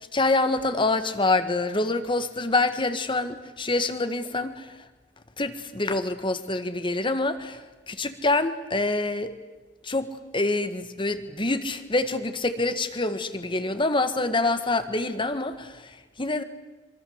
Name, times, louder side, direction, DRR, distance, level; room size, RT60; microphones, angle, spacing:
voice 1, 0.1-4.7 5.4-7.6 7.9-9.3 9.8-10.1 10.3-16.4, left 2 dB, 25° left, 10 dB, 1.6 m, -26 dB
26.0 x 23.5 x 8.1 m, 1.2 s
head